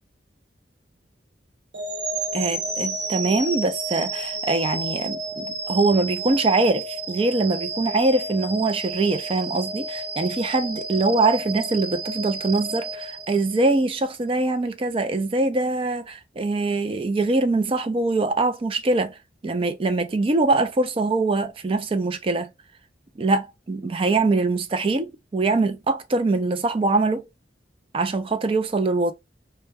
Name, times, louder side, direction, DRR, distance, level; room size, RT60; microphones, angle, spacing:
sound 1, 1.7-13.9, right 3 dB, 75° right, 0.8 m, -31 dB
voice 1, 2.3-19.2 19.4-22.5 23.2-27.3 27.9-29.1, right 3 dB, 30° right, 0.4 m, -23 dB
2.1 x 2.1 x 3.3 m
head